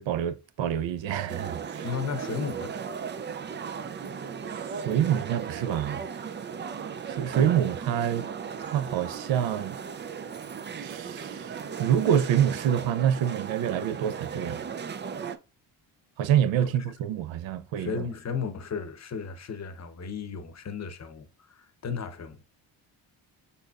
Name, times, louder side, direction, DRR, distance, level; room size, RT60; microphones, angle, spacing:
voice 1, 0.0-1.9 4.5-6.0 7.1-8.3 8.6-9.8 10.8-11.5 11.8-14.6 16.2-18.0, right 9 dB, 65° right, 0.6 m, -27 dB
sound 1, 1.3-15.4, right 6 dB, 25° right, 0.3 m, -36 dB
voice 2, 1.8-2.7 17.8-22.4, left 6 dB, 35° left, 0.8 m, -34 dB
5.3 x 4.2 x 2.3 m
supercardioid pair, 70°, 49 cm